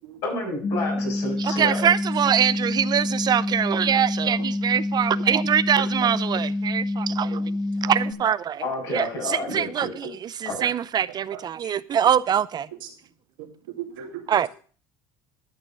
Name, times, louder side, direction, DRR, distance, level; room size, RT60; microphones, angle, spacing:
voice 1, 0.2-1.9 8.6-9.9 10.4-10.6, left 2 dB, 70° left, 6.7 m, -30 dB
sound 1, 0.6-8.1, left 2 dB, 30° left, 2.0 m, -27 dB
voice 2, 1.4-7.5 7.9-8.6 8.9-12.7 14.3-14.5, right 9 dB, 40° right, 0.5 m, -23 dB
voice 3, 13.8-14.5, right 11 dB, 80° right, 2.3 m, -36 dB
12.0 x 6.2 x 5.7 m
hypercardioid pair, 75°, 11 cm